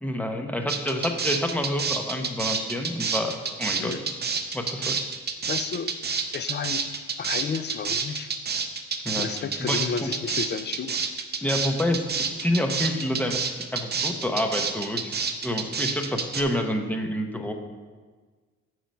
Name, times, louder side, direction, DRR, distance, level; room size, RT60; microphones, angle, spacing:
voice 1, 0.0-3.9 4.5-5.0 9.0-9.3 9.6-10.1 11.4-13.4 13.7-17.5, left 1 dB, 5° left, 4 dB, 0.8 m, -28 dB
sound 1, 0.7-16.4, right 5 dB, 35° right, 0.7 m, -28 dB
voice 2, 3.8-4.1 5.5-5.9 6.3-6.9 7.2-8.3 9.2-11.0, left 6 dB, 35° left, 12 dB, 0.5 m, -32 dB
8.4 x 4.7 x 5.3 m, 1.5 s
cardioid pair, 90°, 30 cm